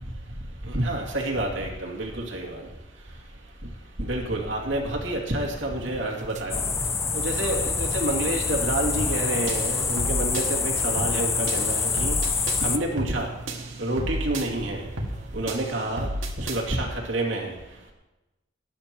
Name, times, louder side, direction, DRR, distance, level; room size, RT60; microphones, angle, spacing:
voice 1, 0.7-2.5 4.1-6.6 7.2-12.1 12.6-13.3 13.8-14.9 15.3-16.1 16.4-17.5, right 1 dB, 70° right, -1 dB, 2.4 m, -28 dB
sound 1, 5.4-16.2, right 2 dB, 35° right, 0.8 m, -42 dB
sound 2, 6.5-12.8, left 5 dB, 15° left, 0.3 m, -26 dB
sound 3, 9.0-9.2 9.5-10.5 11.0-11.2 11.5-12.6 13.0-13.2 13.5-14.5 15.0-15.2 15.5-16.6, right 1 dB, 90° right, 1.9 m, -31 dB
19.0 x 9.9 x 3.0 m, 1.0 s
head